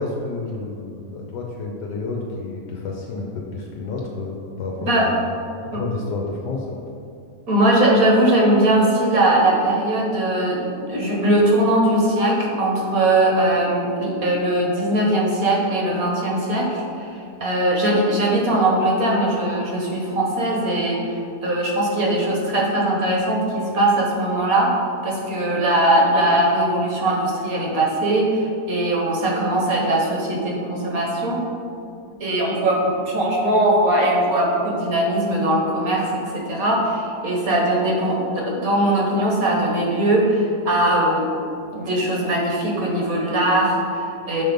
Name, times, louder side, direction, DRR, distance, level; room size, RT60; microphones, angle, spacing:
voice 1, 0.0-5.1 5.5-6.8, left 3 dB, 80° left, -1 dB, 1.3 m, -30 dB
voice 2, 7.5-17.1 17.4-24.7 25.0-31.4 32.2-41.3 41.7-44.4, right 1 dB, 60° right, -2 dB, 1.5 m, -20 dB
6.0 x 3.9 x 5.1 m, 2.5 s
omnidirectional pair, 1.9 m